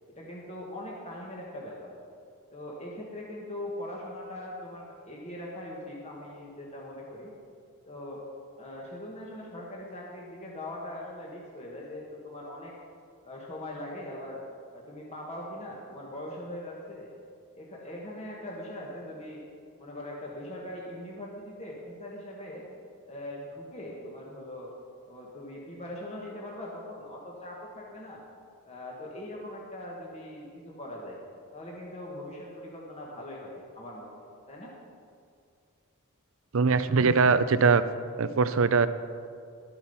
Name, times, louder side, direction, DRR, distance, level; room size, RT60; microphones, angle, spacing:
voice 1, 0.1-1.9 2.5-7.3 7.9-8.2 8.6-12.7 13.2-14.4 14.7-17.1 17.5-19.5 19.8-22.6 23.1-24.7 25.1-28.2 28.6-31.2 31.5-34.1 34.5-34.7, left 1 dB, 30° left, -3 dB, 1.5 m, -41 dB
voice 2, 36.5-37.8 38.2-38.9, right 4 dB, 65° right, 13 dB, 0.5 m, -22 dB
12.5 x 8.7 x 5.6 m, 2.3 s
head